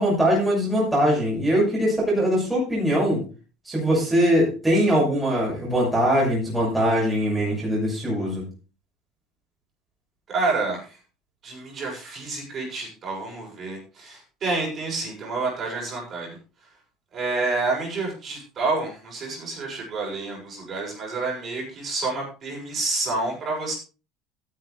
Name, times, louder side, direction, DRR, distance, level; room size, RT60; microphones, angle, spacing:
voice 1, 0.0-3.2 3.6-8.4, equal, 5° right, -6 dB, 6.4 m, -22 dB
voice 2, 10.3-11.0 11.4-16.4 17.1-23.7, right 3 dB, 30° right, -1 dB, 6.6 m, -29 dB
15.0 x 10.0 x 3.4 m, 0.34 s
cardioid pair, 160°, 0 cm